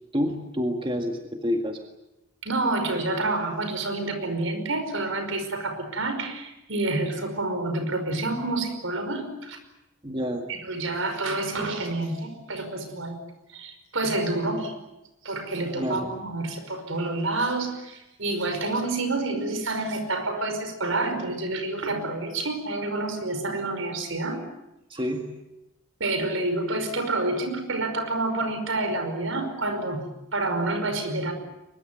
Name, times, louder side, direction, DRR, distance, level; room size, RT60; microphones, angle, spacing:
voice 1, 0.1-1.8 10.0-10.5 15.8-16.2 24.9-25.3, equal, 25° right, 3 dB, 1.9 m, -28 dB
voice 2, 2.4-9.6 10.5-13.2 13.5-14.7 15.2-24.4 26.0-30.0 30.3-31.3, right 2 dB, 75° right, 7 dB, 5.3 m, -28 dB
23.5 x 22.0 x 9.3 m, 0.92 s
head